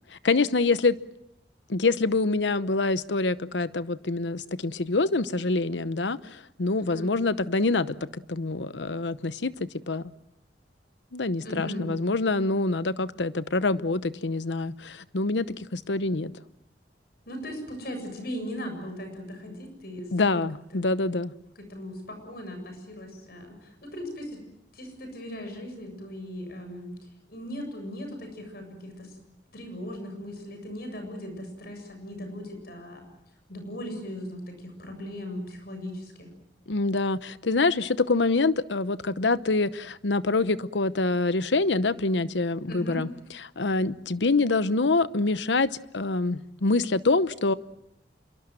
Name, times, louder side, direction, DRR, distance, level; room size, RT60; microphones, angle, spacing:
voice 1, 0.2-1.0 1.7-10.1 11.1-16.3 20.1-21.3 36.7-43.1 43.6-47.5, left 3 dB, 80° left, 15 dB, 0.9 m, -26 dB
voice 2, 6.8-7.1 11.4-11.8 17.3-20.4 20.7-20.8 21.6-24.4 24.7-26.9 27.3-29.2 29.5-33.1 33.5-36.3 42.7-43.0, equal, 60° left, 6 dB, 7.5 m, -38 dB
27.0 x 23.5 x 7.7 m, 0.83 s
head